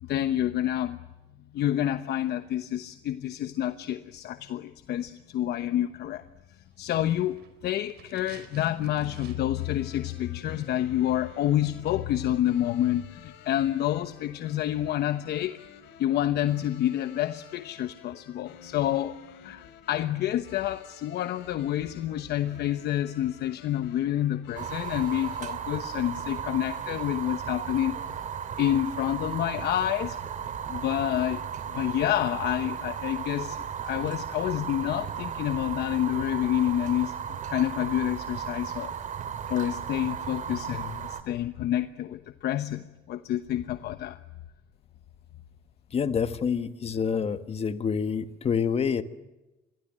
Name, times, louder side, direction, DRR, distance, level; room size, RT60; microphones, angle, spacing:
voice 1, 0.0-1.0 1.5-6.2 6.5-15.6 16.0-19.2 19.4-28.0 28.6-30.2 30.7-31.4 31.7-38.9 39.5-44.2, left 12 dB, 65° left, 11 dB, 1.1 m, -28 dB
sound 1, 6.8-9.7 10.0-10.1, right 8 dB, 65° right, 4.7 m, -52 dB
sound 2, 9.5-25.5, left 9 dB, 80° left, 3.7 m, -52 dB
Fire, 24.6-41.2, right 8 dB, 45° right, 2.4 m, -35 dB
voice 2, 45.9-49.0, left 6 dB, 35° left, 11 dB, 1.5 m, -27 dB
28.0 x 22.5 x 7.5 m, 1.0 s
cardioid pair, 135°, 18 cm